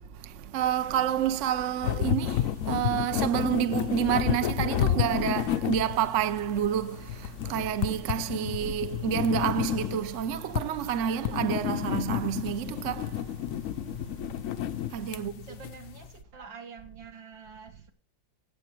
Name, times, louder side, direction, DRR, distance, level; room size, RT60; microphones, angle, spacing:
voice 1, 0.5-13.1 14.9-15.3, right 9 dB, 55° right, 0.8 m, -29 dB
sound 1, 1.8-16.1, left 12 dB, 65° left, 0.8 m, -31 dB
voice 2, 15.1-17.9, right 6 dB, 75° right, 2.7 m, -47 dB
17.0 x 7.8 x 4.6 m
omnidirectional pair, 2.1 m